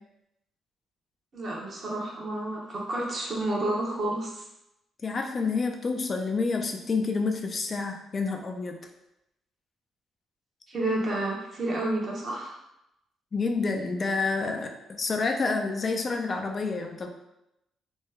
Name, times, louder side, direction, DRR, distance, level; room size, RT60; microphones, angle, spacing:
voice 1, 1.3-4.4 10.7-12.6, right 1 dB, 50° right, -3 dB, 0.9 m, -30 dB
voice 2, 5.0-8.8 13.3-17.1, left 4 dB, 40° left, 4 dB, 0.4 m, -28 dB
3.1 x 2.2 x 3.3 m, 0.85 s
cardioid pair, 90°, 0 cm